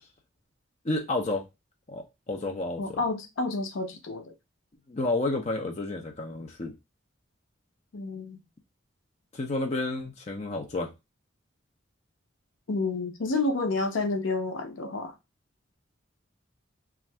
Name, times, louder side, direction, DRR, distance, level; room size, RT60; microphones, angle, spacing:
voice 1, 0.8-1.4 1.9-3.0 4.9-6.7 9.3-10.9, left 2 dB, 35° left, 0.5 m, -30 dB
voice 2, 2.8-4.3 7.9-8.4 12.7-15.1, left 3 dB, 80° left, 0.6 m, -29 dB
2.6 x 2.4 x 3.2 m
head